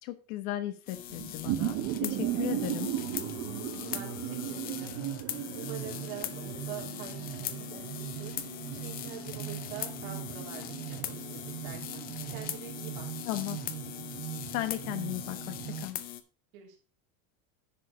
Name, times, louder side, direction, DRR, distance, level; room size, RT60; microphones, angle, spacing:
voice 1, 0.0-2.9 13.3-13.6 14.5-16.0, left 14 dB, 80° left, 9 dB, 1.2 m, -36 dB
sound 1, 0.9-16.2, left 12 dB, 25° left, 0.4 m, -41 dB
sound 2, 1.1-15.9, right 13 dB, 35° right, 0.6 m, -37 dB
voice 2, 3.9-5.0 5.6-8.3 8.7-13.1 16.5-16.8, right 9 dB, 75° right, 0 dB, 3.3 m, -45 dB
10.0 x 5.0 x 5.0 m, 0.37 s
cardioid pair, 170°, 42 cm